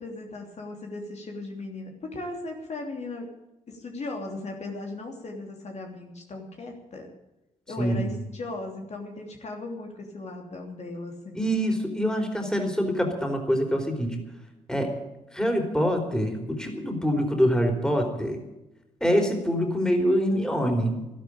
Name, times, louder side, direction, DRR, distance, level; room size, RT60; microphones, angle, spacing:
voice 1, 0.0-3.3 3.7-7.1 7.7-11.4 20.3-21.0, left 2 dB, 50° left, 2 dB, 3.1 m, -37 dB
voice 2, 7.8-8.2 11.3-14.2 14.7-14.9 15.3-18.4 19.0-21.1, equal, 5° left, 4 dB, 4.3 m, -25 dB
12.5 x 12.0 x 8.9 m, 0.97 s
cardioid pair, 65°, 14 cm